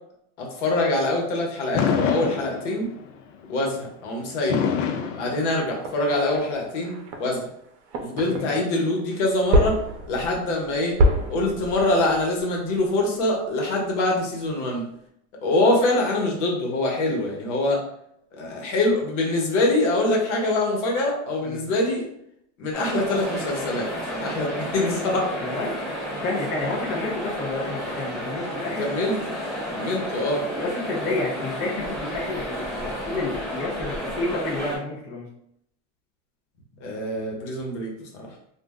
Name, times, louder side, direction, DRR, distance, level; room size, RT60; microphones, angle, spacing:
voice 1, 0.4-2.9 3.5-4.6 5.2-7.5 8.0-9.7 10.1-10.9 11.3-14.8 15.4-17.8 18.3-22.1 22.6-25.3 28.8-29.2 29.7-30.5 36.8-38.3, left 2 dB, 70° left, 0 dB, 1.1 m, -24 dB
Fireworks, 1.7-3.1 4.5-6.0, left 7 dB, 85° left, 0.6 m, -26 dB
sound 1, 5.8-8.9 9.3-14.0 14.4-14.5, equal, 70° right, 0.7 m, -27 dB
voice 2, 8.2-8.5 21.4-21.6 25.4-25.8 26.2-28.9 30.3-35.3, left 2 dB, 20° left, -4 dB, 0.5 m, -30 dB
sound 2, 22.7-34.8, equal, ahead, 1.0 m, -32 dB
2.5 x 2.1 x 3.5 m, 0.74 s
supercardioid pair, 145°, 38 cm